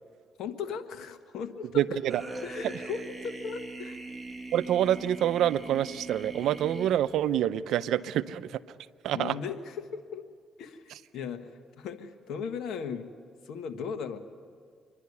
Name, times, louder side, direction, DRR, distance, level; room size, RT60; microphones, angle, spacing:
voice 1, 0.4-1.8 2.4-4.0 9.1-10.3 10.6-13.1 13.4-14.2, left 6 dB, 80° left, 7 dB, 1.3 m, -37 dB
voice 2, 1.7-2.2 4.5-8.6 9.0-9.4, right 11 dB, 80° right, 15 dB, 0.6 m, -27 dB
sound 1, 2.1-7.4, right 3 dB, 15° right, 1.9 m, -41 dB
27.0 x 11.5 x 9.7 m, 2.1 s
cardioid pair, 90°, 0 cm